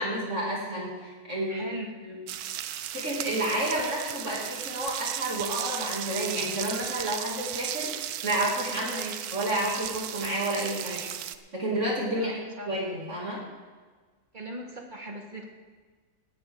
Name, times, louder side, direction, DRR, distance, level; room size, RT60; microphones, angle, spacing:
voice 1, 0.0-1.7 2.0-2.2 2.9-11.0 11.5-12.3 12.7-13.4, right 1 dB, 50° right, -4 dB, 3.0 m, -30 dB
voice 2, 1.5-2.0 8.9-9.1 10.9-11.1 12.2-12.7 14.3-15.5, right 2 dB, 30° right, 1 dB, 2.0 m, -39 dB
sound 1, 2.3-11.4, right 11 dB, 80° right, 1.1 m, -35 dB
18.0 x 12.0 x 3.7 m, 1.4 s
omnidirectional pair, 1.6 m